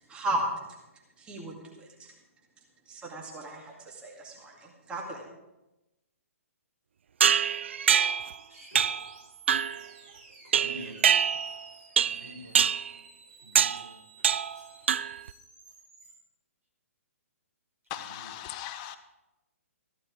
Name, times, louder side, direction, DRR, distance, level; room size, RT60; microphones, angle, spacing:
voice 1, 0.1-0.6 1.2-2.1 2.9-5.2, right 1 dB, 10° right, -1 dB, 2.1 m, -35 dB
sound 1, 7.2-8.3 8.8-9.1 9.5-9.8 10.5-11.6 12.0-12.3 12.6-12.9 13.6-13.9 14.2-14.6 14.9-15.3, right 8 dB, 55° right, 0.4 m, -24 dB
sound 2, 8.2-16.2, right 3 dB, 40° right, 5.8 m, -55 dB
voice 2, 8.5-8.9 10.4-11.0 12.0-12.6 13.4-13.9 18.1-18.2, equal, 75° right, 0 dB, 5.2 m, -47 dB
voice 3, 17.9-19.0, left 11 dB, 25° left, 10 dB, 0.7 m, -39 dB
14.5 x 11.0 x 4.8 m, 0.99 s
figure-of-eight pair, 125°, 8 cm